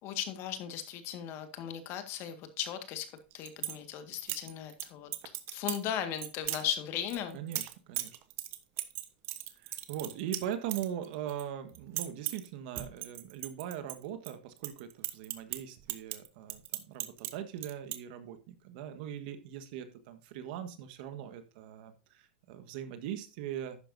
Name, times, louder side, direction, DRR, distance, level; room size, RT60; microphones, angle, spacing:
voice 1, 0.0-7.4, left 10 dB, 45° left, 9 dB, 1.8 m, -37 dB
sound 1, 3.2-3.8 4.1-4.8 5.1-5.8 6.2-6.6 7.1-11.4 11.7-12.5 12.8-14.3 14.6-17.3 17.6-18.0, right 14 dB, 45° right, 1.1 m, -37 dB
voice 2, 7.3-8.2 9.6-23.8, right 10 dB, 60° right, 9 dB, 1.5 m, -40 dB
11.5 x 9.0 x 2.7 m, 0.33 s
hypercardioid pair, 120°, 6 cm